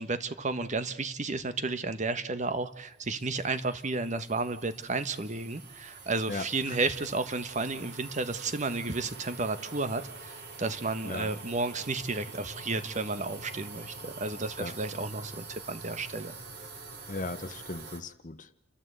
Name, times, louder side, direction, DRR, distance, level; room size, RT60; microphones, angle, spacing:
voice 1, 0.0-16.3, right 3 dB, 40° right, 11 dB, 1.2 m, -32 dB
sound 1, 2.8-18.0, right 3 dB, 55° right, 3.0 m, -46 dB
voice 2, 6.3-6.8 11.0-11.3 14.6-14.7 17.1-18.5, left 2 dB, 40° left, 12 dB, 1.0 m, -37 dB
29.5 x 13.5 x 8.1 m, 0.83 s
head